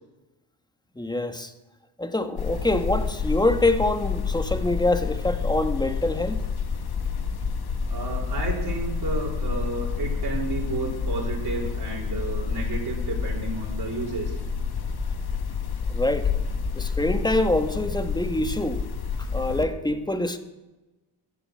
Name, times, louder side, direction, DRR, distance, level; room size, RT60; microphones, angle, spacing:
voice 1, 1.0-1.5 2.0-6.4 15.9-16.3 16.7-18.8 19.3-20.4, left 2 dB, 10° left, 1.5 m, -25 dB
sound 1, 2.4-19.6, left 5 dB, 50° left, 1.5 m, -29 dB
voice 2, 7.8-14.4, right 3 dB, 50° right, 4.2 m, -32 dB
14.5 x 8.8 x 7.7 m
cardioid pair, 70°, 48 cm